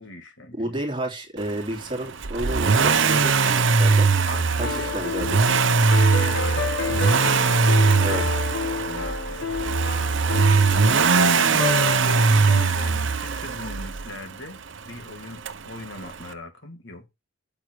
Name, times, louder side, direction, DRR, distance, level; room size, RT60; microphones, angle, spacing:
voice 1, 0.0-0.8 4.3-4.9 5.4-7.1 7.8-8.2 8.8-17.1, left 2 dB, 65° left, 2.3 m, -41 dB
voice 2, 0.6-4.1 4.6-5.5 8.0-8.2, right 1 dB, 25° right, 2.9 m, -31 dB
Accelerating revving vroom, 2.2-14.2 15.5-15.6, right 4 dB, 65° right, 0.9 m, -20 dB
sound 1, 4.6-12.7, left 5 dB, 80° left, 1.3 m, -30 dB
8.7 x 7.8 x 4.7 m
head